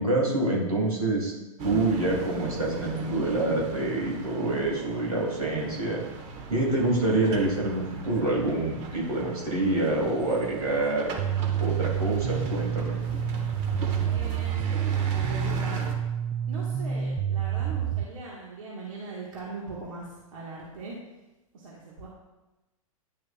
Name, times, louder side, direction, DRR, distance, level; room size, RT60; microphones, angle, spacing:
voice 1, 0.0-1.3 1.6-6.0 6.5-11.1 11.6-13.0, right 2 dB, 90° right, -3 dB, 2.6 m, -26 dB
sound 1, 1.6-15.9, right 2 dB, 40° right, 1.3 m, -39 dB
sound 2, 11.2-18.0, right 9 dB, 20° right, 0.4 m, -28 dB
voice 2, 14.1-15.8 16.5-20.9 21.5-22.1, right 3 dB, 65° right, -4 dB, 1.6 m, -40 dB
10.5 x 6.5 x 2.4 m, 1.0 s
hypercardioid pair, 105°, 18 cm